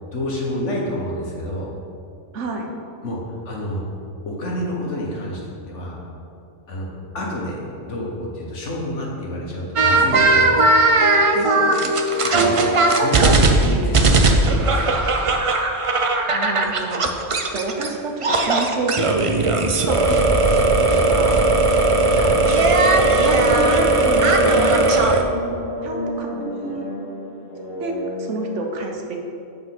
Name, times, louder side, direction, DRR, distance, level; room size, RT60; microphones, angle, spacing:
voice 1, 0.1-1.7 3.0-3.8 4.3-5.4 5.7-6.0 6.7-6.9 7.1-10.6 12.3-12.5 12.9-14.9 22.1-22.4, left 1 dB, 75° left, -3 dB, 1.8 m, -28 dB
voice 2, 2.3-2.7 11.3-11.9 16.3-17.1 17.5-19.3 19.8-21.4 22.2-22.8 23.1-25.0 25.8-26.9 27.8-29.2, right 3 dB, 80° right, 2 dB, 1.3 m, -29 dB
sound 1, 9.8-17.9 18.2-25.2, right 2 dB, 45° right, 0.4 m, -17 dB
sound 2, 23.0-28.4, left 1 dB, 45° left, 2.0 m, -31 dB
7.9 x 4.4 x 6.0 m, 2.5 s
omnidirectional pair, 1.2 m